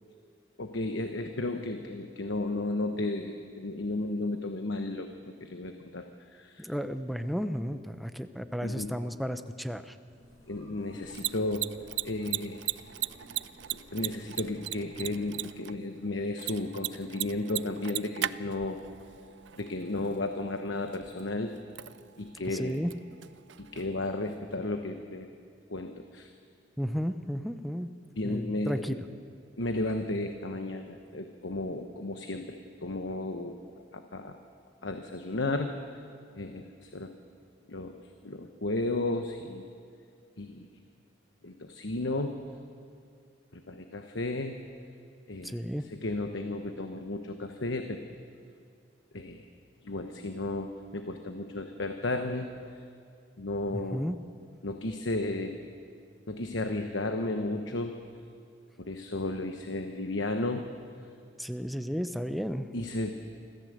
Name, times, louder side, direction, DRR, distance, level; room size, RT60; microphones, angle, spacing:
voice 1, 0.6-5.1 5.4-6.1 6.3-6.7 8.6-8.9 10.5-11.7 12.0-12.6 13.7-18.8 19.6-21.6 22.2-22.8 23.6-25.3 25.7-26.3 28.2-29.0 29.6-33.6 33.9-34.4 34.8-35.8 36.4-37.1 37.7-38.0 38.2-39.6 40.4-40.7 41.4-42.4 43.5-44.6 45.3-48.1 49.1-49.4 49.8-52.5 53.4-54.1 54.6-55.6 56.3-58.0 58.8-60.7 62.7-63.1, left 2 dB, 75° left, 6 dB, 1.1 m, -33 dB
voice 2, 6.6-9.8 22.6-22.9 26.8-27.9 28.2-29.0 45.5-45.9 53.9-54.2 61.4-62.7, equal, ahead, 9 dB, 0.7 m, -33 dB
sound 1, 10.1-15.3, equal, 15° left, 6.3 m, -56 dB
Mechanisms, 10.9-24.5, right 14 dB, 65° right, 0.4 m, -39 dB
25.0 x 15.0 x 7.9 m, 2.3 s
head